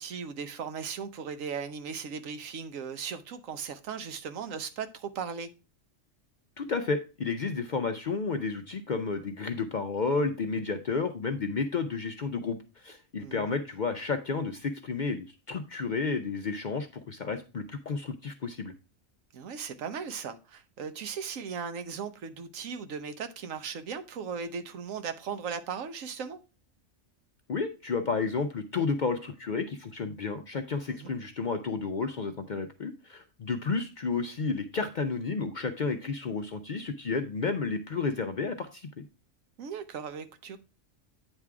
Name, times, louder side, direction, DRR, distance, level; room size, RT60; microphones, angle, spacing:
voice 1, 0.0-5.5 13.2-13.5 19.3-26.4 30.9-31.1 39.6-40.6, right 6 dB, 85° right, 1.2 m, -37 dB
voice 2, 6.6-18.7 27.5-39.0, left 4 dB, 55° left, 0.5 m, -31 dB
8.9 x 3.6 x 4.6 m
omnidirectional pair, 1.3 m